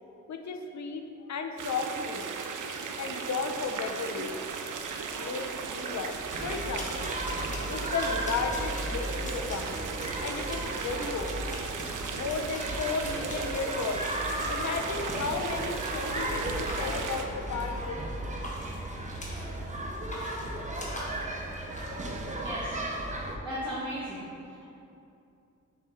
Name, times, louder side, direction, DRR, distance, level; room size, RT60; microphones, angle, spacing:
voice 1, 0.3-2.3 3.0-4.3 5.2-6.2 6.4-7.1 7.7-9.8 10.2-11.4 12.1-18.2, left 4 dB, 65° left, 4 dB, 0.6 m, -34 dB
sound 1, 1.6-17.3, right 5 dB, 85° right, 0.5 m, -37 dB
sound 2, 5.9-15.1 15.8-16.1 16.7-18.1 18.4-19.6 19.9-22.0, left 1 dB, 25° left, 1.1 m, -44 dB
sound 3, 6.3-23.4, right 1 dB, 25° right, 0.7 m, -35 dB
voice 2, 22.4-22.8 23.4-24.6, equal, 5° right, -11 dB, 1.5 m, -36 dB
6.8 x 4.1 x 3.9 m, 2.7 s
wide cardioid pair, 95°, 30 cm